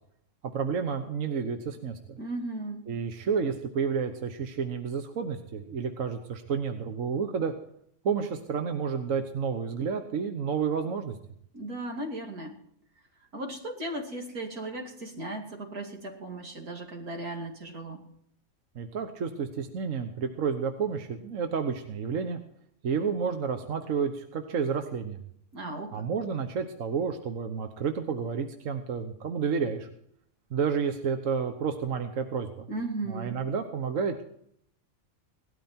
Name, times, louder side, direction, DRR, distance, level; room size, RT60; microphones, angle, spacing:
voice 1, 0.5-2.2 2.9-7.5 8.0-11.1 18.8-22.4 22.8-25.2 25.9-29.9 30.5-32.7 33.1-34.2, right 6 dB, 65° right, 6 dB, 1.4 m, -30 dB
voice 2, 2.2-2.9 11.5-12.6 13.3-18.0 25.5-26.1 32.7-33.4, right 2 dB, 85° right, 2 dB, 3.0 m, -36 dB
17.5 x 12.5 x 4.4 m, 0.68 s
omnidirectional pair, 1.5 m